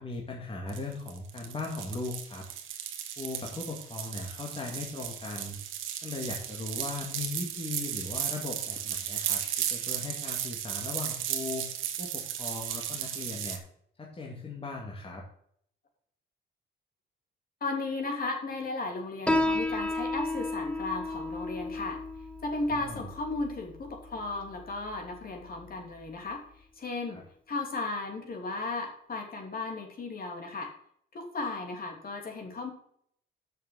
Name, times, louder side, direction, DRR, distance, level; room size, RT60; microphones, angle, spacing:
voice 1, 0.0-2.4 3.2-5.6 6.0-11.6 12.0-13.6 14.0-15.2 22.7-23.0 27.1-27.2, left 3 dB, 30° left, -1 dB, 2.2 m, -38 dB
sound 1, 0.7-13.6, right 10 dB, 85° right, 1.3 m, -35 dB
voice 2, 17.6-22.0 22.4-26.4 26.8-27.2 27.5-30.7 31.1-32.7, left 3 dB, 45° left, 3 dB, 3.1 m, -35 dB
Piano, 19.3-26.3, left 2 dB, 5° left, 0.9 m, -34 dB
6.8 x 6.6 x 7.4 m, 0.66 s
cardioid pair, 90°, 20 cm